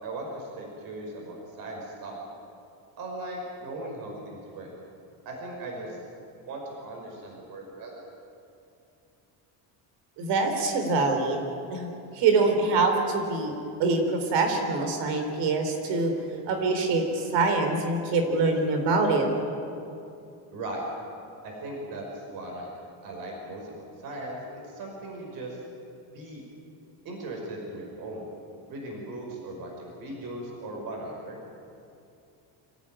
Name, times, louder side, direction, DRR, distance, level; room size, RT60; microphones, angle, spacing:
voice 1, 0.0-2.2 3.0-4.7 5.3-5.9 6.5-8.1 20.5-20.8 21.4-22.7 23.0-24.4 24.6-25.6 26.1-26.4 27.0-28.2 28.7-31.4, right 2 dB, 55° right, 0 dB, 5.4 m, -38 dB
voice 2, 10.2-11.4 11.7-11.9 12.1-16.1 16.5-19.3, right 3 dB, 80° right, 5 dB, 4.2 m, -24 dB
26.0 x 15.0 x 9.0 m, 2.6 s
cardioid pair, 165°, 41 cm